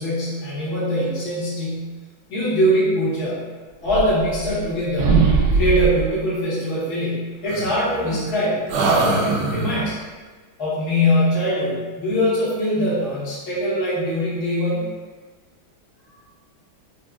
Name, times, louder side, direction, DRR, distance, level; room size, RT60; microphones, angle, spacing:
voice 1, 0.0-2.0 2.3-3.5 3.8-5.2 5.5-8.6 9.0-10.0 10.6-14.9, equal, 55° left, -9 dB, 1.6 m, -22 dB
sound 1, 3.8-4.7 5.0-6.1 7.5-8.3 8.7-9.9, right 4 dB, 75° right, 1.1 m, -21 dB
4.7 x 2.4 x 2.3 m, 1.3 s
omnidirectional pair, 2.2 m